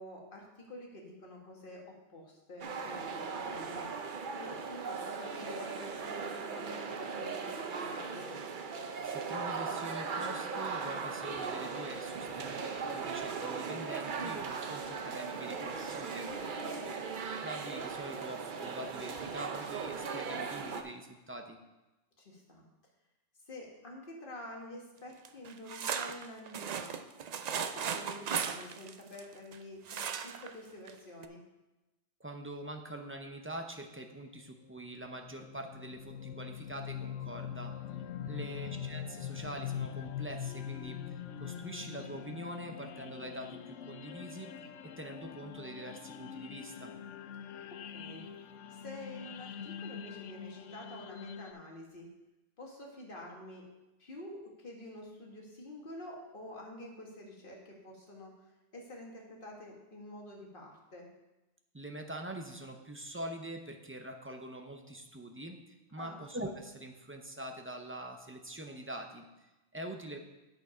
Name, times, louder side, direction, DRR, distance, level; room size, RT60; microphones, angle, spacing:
voice 1, 0.0-3.9 4.4-8.4 16.6-17.0 22.2-22.6 23.5-27.0 27.5-31.4 38.3-38.6 47.7-48.3 48.7-52.1 52.6-53.7 54.0-58.3 58.7-61.1 66.0-66.2, left 1 dB, 45° left, -1 dB, 1.8 m, -48 dB
sound 1, 2.6-20.8, right 5 dB, 50° right, 0.8 m, -38 dB
voice 2, 9.0-16.6 17.4-21.6 32.2-37.7 38.3-44.5 45.0-46.9 61.7-70.2, right 1 dB, 15° right, 3 dB, 0.5 m, -44 dB
sound 2, 25.2-29.6 29.9-30.5 30.9-31.0 31.2-31.3, right 7 dB, 75° right, 0.3 m, -37 dB
sound 3, 34.8-51.5, left 8 dB, 80° left, 0.9 m, -43 dB
8.2 x 6.6 x 4.9 m, 1.0 s
omnidirectional pair, 1.2 m